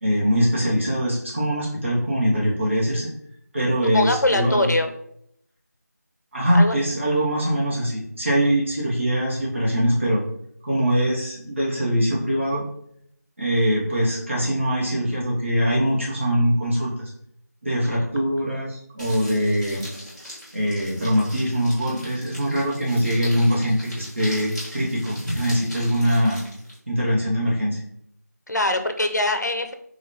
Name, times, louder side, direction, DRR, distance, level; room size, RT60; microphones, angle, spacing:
voice 1, 0.0-3.1 3.5-4.7 6.3-10.2 10.6-12.6 13.4-17.1 17.6-19.8 20.5-26.4 26.9-27.8, equal, 45° right, -6 dB, 1.2 m, -22 dB
voice 2, 3.8-4.9 6.5-6.8 17.8-17.9 28.5-29.7, left 1 dB, 75° left, 7 dB, 0.7 m, -22 dB
sound 1, 19.0-26.8, equal, 5° left, 1.4 m, -40 dB
5.5 x 2.8 x 2.9 m, 0.71 s
figure-of-eight pair, 170°, 9 cm